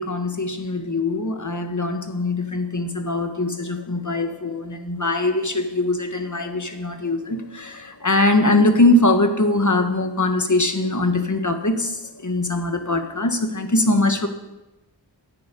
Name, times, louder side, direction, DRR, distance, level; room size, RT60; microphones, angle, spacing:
voice 1, 0.0-14.3, left 2 dB, 40° left, 6 dB, 1.7 m, -22 dB
11.0 x 9.3 x 8.5 m, 1.0 s
wide cardioid pair, 50°, 46 cm